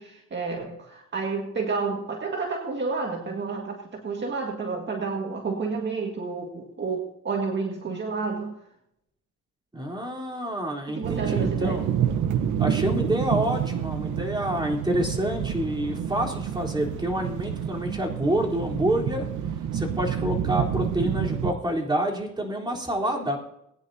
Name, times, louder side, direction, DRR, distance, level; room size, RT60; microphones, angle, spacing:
voice 1, 0.0-8.6 10.9-11.9, right 4 dB, 35° right, 1 dB, 1.9 m, -30 dB
voice 2, 9.7-11.9 12.6-19.3 19.7-23.4, right 1 dB, 15° right, -1 dB, 3.8 m, -28 dB
sound 1, 11.0-21.5, right 9 dB, 80° right, 1.1 m, -28 dB
21.0 x 10.0 x 2.8 m, 0.78 s
cardioid pair, 90°, 30 cm